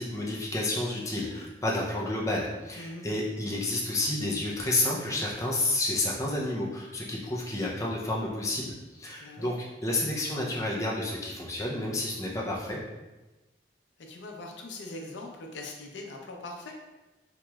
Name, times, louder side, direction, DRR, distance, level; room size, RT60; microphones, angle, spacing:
voice 1, 0.0-12.8, left 1 dB, 15° left, -4 dB, 0.4 m, -30 dB
voice 2, 2.8-3.1 9.2-9.5 14.0-16.7, left 2 dB, 80° left, 1 dB, 0.5 m, -41 dB
3.0 x 2.9 x 2.3 m, 1.1 s
head